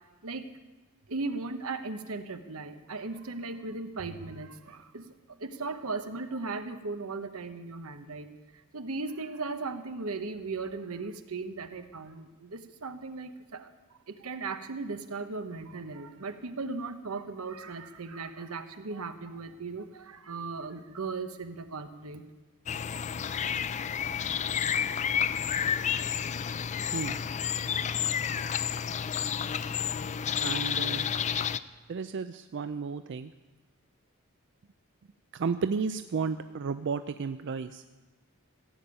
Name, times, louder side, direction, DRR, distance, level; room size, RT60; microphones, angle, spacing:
voice 1, 1.1-5.1 5.4-8.3 8.7-13.7 14.1-22.2, right 3 dB, 85° right, 9 dB, 1.0 m, -37 dB
sound 1, 22.7-31.6, left 8 dB, 35° left, 0.4 m, -30 dB
voice 2, 30.4-31.1 31.9-33.3 35.3-37.8, right 5 dB, 55° right, 10 dB, 0.4 m, -33 dB
15.5 x 7.0 x 8.8 m, 1.2 s
head